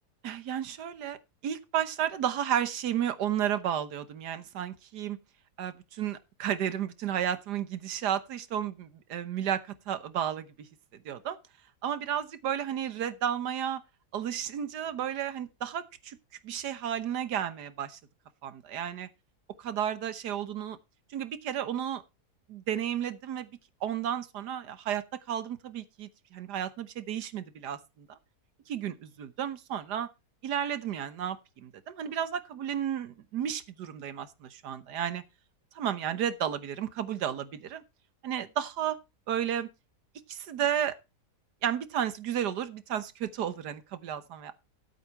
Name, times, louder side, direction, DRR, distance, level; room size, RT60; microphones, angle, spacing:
voice 1, 0.2-1.2 1.4-5.2 5.6-10.7 11.0-11.4 11.8-13.8 14.1-16.2 16.4-18.0 18.4-19.1 19.6-20.8 21.1-22.0 22.5-23.5 23.8-27.8 28.7-30.1 30.4-35.2 35.7-37.8 38.2-39.0 39.3-39.7 40.3-41.0 41.6-44.5, right 9 dB, 85° right, 1.6 m, -32 dB
12.5 x 8.4 x 4.6 m
omnidirectional pair, 1.7 m